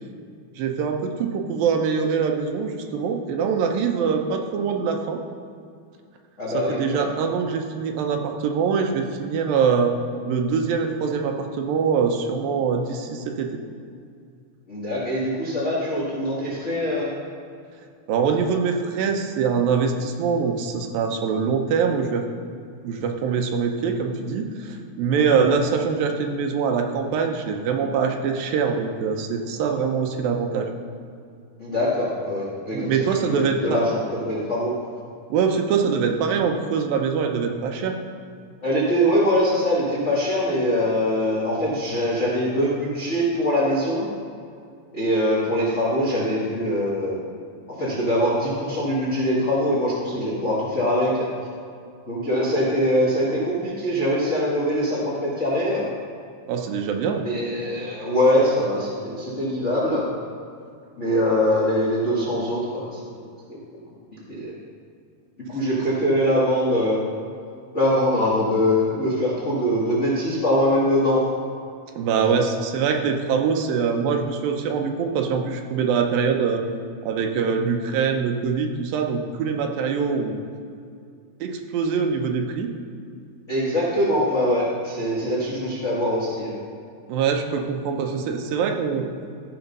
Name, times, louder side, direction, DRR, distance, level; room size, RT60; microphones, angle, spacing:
voice 1, 0.6-5.2 6.5-10.0 10.3-13.6 18.1-22.3 22.8-30.7 32.7-33.8 35.3-38.0 56.5-57.3 72.0-76.6 77.0-80.4 81.4-82.7 85.2-85.3 87.1-89.1, right 6 dB, 75° right, 4 dB, 2.4 m, -23 dB
voice 2, 6.4-7.1 14.7-17.1 31.6-34.0 34.2-34.7 38.6-44.1 44.9-47.2 47.8-51.3 52.1-55.8 57.2-60.0 61.0-63.0 63.5-63.6 64.3-64.5 65.5-67.0 67.7-71.2 72.2-72.5 83.5-86.6, equal, 40° left, -6 dB, 1.0 m, -23 dB
15.0 x 5.1 x 5.4 m, 2.3 s
omnidirectional pair, 4.5 m